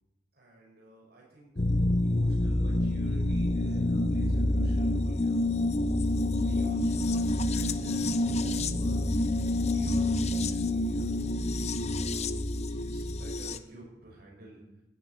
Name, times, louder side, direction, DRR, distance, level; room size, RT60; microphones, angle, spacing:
voice 1, 0.3-1.5 2.0-5.5 6.4-9.1 9.7-11.1 11.8-14.6, right 2 dB, 60° right, -2 dB, 5.9 m, -50 dB
sound 1, 1.6-13.6, left 1 dB, 40° left, 0.7 m, -27 dB
14.5 x 7.6 x 9.5 m, 0.95 s
head